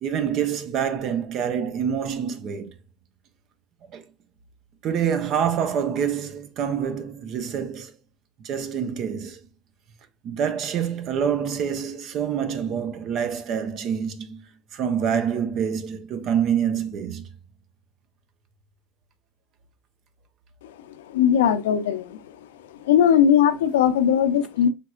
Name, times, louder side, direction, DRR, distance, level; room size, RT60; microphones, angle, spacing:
voice 1, 0.0-2.7 3.9-4.0 4.8-7.9 8.4-9.4 10.2-17.3, right 8 dB, 50° right, 0.9 m, -26 dB
voice 2, 20.9-22.4 22.8-24.7, left 9 dB, 80° left, 0.7 m, -19 dB
5.8 x 3.4 x 2.4 m
hypercardioid pair, 90°, 0 cm